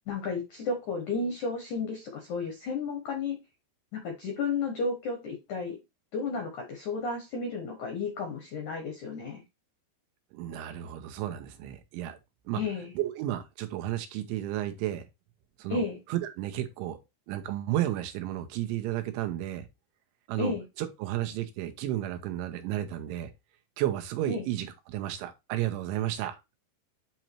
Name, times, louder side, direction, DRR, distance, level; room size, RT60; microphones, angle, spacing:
voice 1, 0.1-3.4 3.9-5.8 6.1-9.4 12.6-12.9 15.7-16.0 20.4-20.6 24.3-24.4, left 4 dB, 80° left, 1.7 m, -32 dB
voice 2, 10.3-12.2 12.5-12.6 12.9-15.0 15.6-15.8 16.1-17.0 17.3-19.7 20.3-20.5 20.8-23.3 23.8-26.4, right 13 dB, 85° right, 3.2 m, -32 dB
9.0 x 3.1 x 4.3 m
omnidirectional pair, 5.4 m